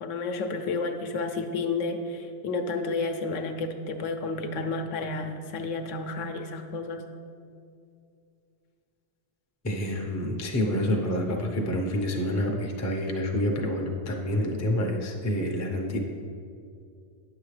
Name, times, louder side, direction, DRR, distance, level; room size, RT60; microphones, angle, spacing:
voice 1, 0.0-7.0, left 3 dB, 75° left, 6 dB, 1.0 m, -31 dB
voice 2, 9.6-16.0, equal, 20° left, 1 dB, 0.5 m, -28 dB
9.5 x 6.8 x 3.2 m, 2.4 s
omnidirectional pair, 1.3 m